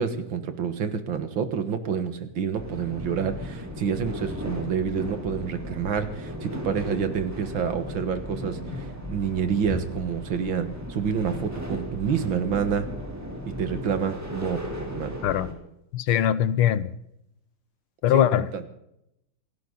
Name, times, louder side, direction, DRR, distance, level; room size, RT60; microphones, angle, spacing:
voice 1, 0.0-12.9 13.5-15.2 18.1-18.6, right 7 dB, 70° right, 9 dB, 2.3 m, -28 dB
sound 1, 2.5-15.5, left 1 dB, 5° right, 3.3 m, -36 dB
voice 2, 15.9-16.9 18.0-18.7, left 11 dB, 85° left, 16 dB, 1.7 m, -22 dB
28.0 x 11.5 x 4.0 m, 0.81 s
omnidirectional pair, 2.3 m